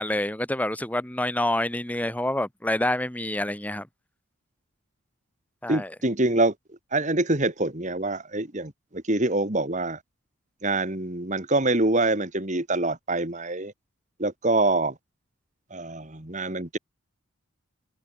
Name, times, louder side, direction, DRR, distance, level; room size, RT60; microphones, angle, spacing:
voice 1, 0.0-3.9 5.6-5.9, left 1 dB, 5° left, 1.1 m, -27 dB
voice 2, 5.7-6.5 6.9-10.0 10.6-13.7 14.2-14.9 15.7-16.8, right 2 dB, 30° right, 2.0 m, -25 dB
head